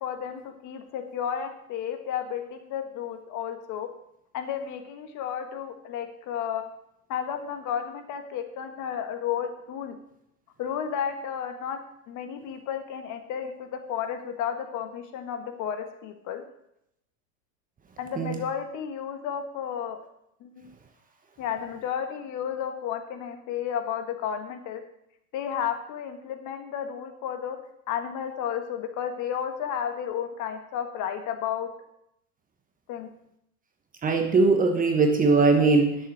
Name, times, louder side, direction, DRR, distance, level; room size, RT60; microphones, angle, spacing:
voice 1, 0.0-3.9 4.3-6.7 7.1-10.0 10.6-11.8 12.1-16.4 18.0-20.0 20.4-20.7 21.4-24.8 25.3-27.6 27.9-31.7 32.9-33.1, left 8 dB, 40° left, 7 dB, 1.5 m, -32 dB
voice 2, 34.0-36.1, right 3 dB, 20° right, 5 dB, 1.1 m, -20 dB
11.0 x 7.2 x 6.3 m, 0.78 s
supercardioid pair, 135°, 45 cm